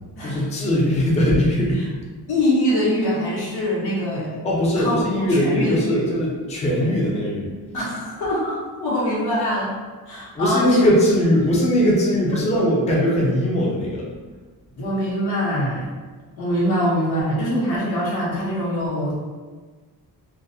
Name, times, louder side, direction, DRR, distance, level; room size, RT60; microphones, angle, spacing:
voice 1, 0.0-1.8 4.4-7.5 10.3-14.0, equal, 20° left, -4 dB, 0.4 m, -20 dB
voice 2, 2.3-4.3 4.8-4.9 5.3-6.0 7.7-9.7 10.1-10.9 14.8-15.9 16.4-19.1, equal, 80° left, -7 dB, 1.0 m, -23 dB
2.3 x 2.0 x 2.6 m, 1.4 s
cardioid pair, 115°, 38 cm